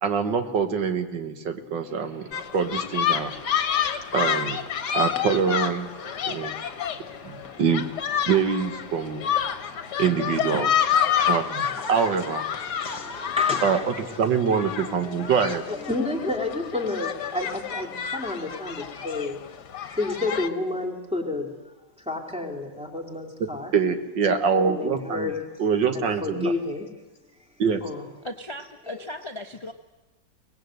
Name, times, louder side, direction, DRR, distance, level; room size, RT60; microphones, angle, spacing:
voice 1, 0.0-2.3 2.5-3.3 4.1-4.6 4.9-5.9 6.3-6.5 7.2-7.9 8.3-9.2 10.0-10.7 11.3-12.4 13.6-15.6 23.7-25.3 25.6-26.5 27.6-27.8, right 6 dB, 80° right, 7 dB, 2.0 m, -24 dB
sound 1, 1.8-13.8, equal, 60° right, 8.1 m, -50 dB
sound 2, 2.3-20.5, left 8 dB, 65° left, 1.6 m, -29 dB
voice 2, 12.6-13.8 15.0-15.3 15.7-19.4 19.8-21.5 22.1-23.7 24.6-25.4 25.9-26.8 27.8-28.1 28.9-29.0, left 2 dB, 5° right, 0 dB, 2.9 m, -30 dB
voice 3, 28.2-29.7, left 1 dB, 40° left, 6 dB, 0.4 m, -37 dB
24.0 x 19.0 x 7.9 m, 1.1 s
omnidirectional pair, 2.0 m